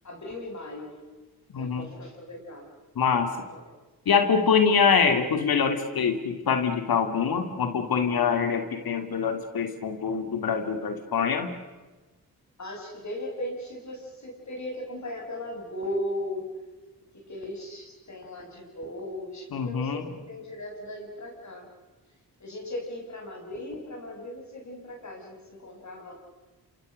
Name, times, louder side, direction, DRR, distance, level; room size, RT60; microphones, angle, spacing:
voice 1, 0.0-1.1 1.5-2.7 3.3-3.6 12.6-16.5 17.0-21.7 22.4-26.1, left 1 dB, 50° left, 1 dB, 7.6 m, -37 dB
voice 2, 1.5-1.9 3.0-3.3 4.1-11.5 19.5-20.1, left 6 dB, 70° left, 7 dB, 2.7 m, -24 dB
27.0 x 25.5 x 6.6 m, 1.2 s
supercardioid pair, 45°, 37 cm